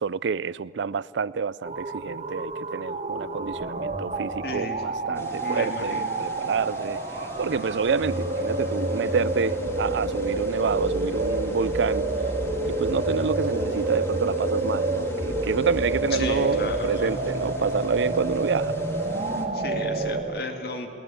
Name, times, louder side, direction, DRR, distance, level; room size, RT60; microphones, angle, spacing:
voice 1, 0.0-7.0 7.4-12.1 12.7-18.8, right 5 dB, 80° right, 0.4 m, -28 dB
sound 1, 1.6-20.2, right 2 dB, 40° right, 1.7 m, -28 dB
voice 2, 4.4-4.8 5.1-6.1 16.1-17.1 19.5-20.9, left 2 dB, 55° left, 2.2 m, -34 dB
sound 2, 5.1-19.5, equal, 15° left, 1.8 m, -41 dB
22.5 x 18.5 x 8.6 m
head